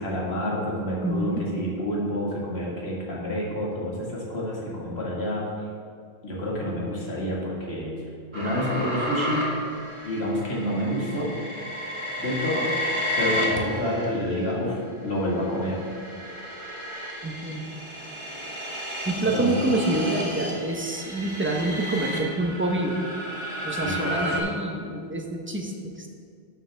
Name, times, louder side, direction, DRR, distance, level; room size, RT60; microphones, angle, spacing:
voice 1, 0.0-5.7 6.2-7.9 8.3-9.5 10.0-11.3 12.2-15.8 19.1-19.7 23.7-24.5, left 1 dB, 80° left, -4 dB, 2.1 m, -28 dB
voice 2, 1.0-1.4 17.2-17.6 19.1-23.0 23.6-26.1, right 2 dB, 15° right, 1 dB, 0.8 m, -27 dB
sound 1, 8.3-14.5 15.1-24.4, equal, 30° right, 1.8 m, -32 dB
12.0 x 7.1 x 3.4 m, 2.3 s
omnidirectional pair, 1.1 m